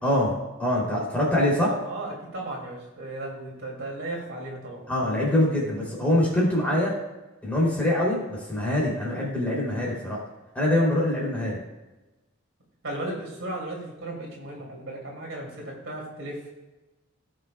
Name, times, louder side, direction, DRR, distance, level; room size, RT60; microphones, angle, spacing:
voice 1, 0.0-0.3 0.6-1.8 4.9-6.9 7.4-10.2 10.5-11.6, left 1 dB, 5° left, -5 dB, 3.0 m, -24 dB
voice 2, 1.8-4.8 12.8-16.5, right 1 dB, 65° right, -2 dB, 2.6 m, -35 dB
17.5 x 6.3 x 2.3 m, 1.1 s
head